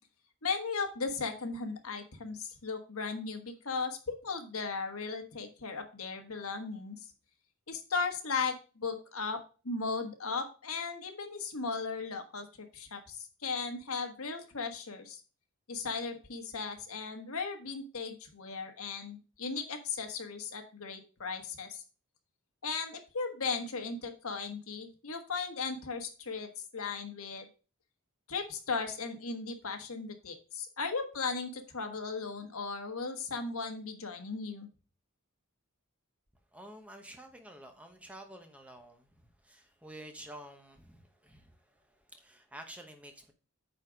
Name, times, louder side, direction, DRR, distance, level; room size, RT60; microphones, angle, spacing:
voice 1, 0.4-7.1 7.7-15.2 15.7-21.8 22.6-27.4 28.3-34.7, left 4 dB, 70° left, 5 dB, 1.4 m, -37 dB
voice 2, 36.5-43.3, right 1 dB, 5° right, 4 dB, 1.1 m, -50 dB
8.9 x 4.3 x 5.0 m, 0.35 s
head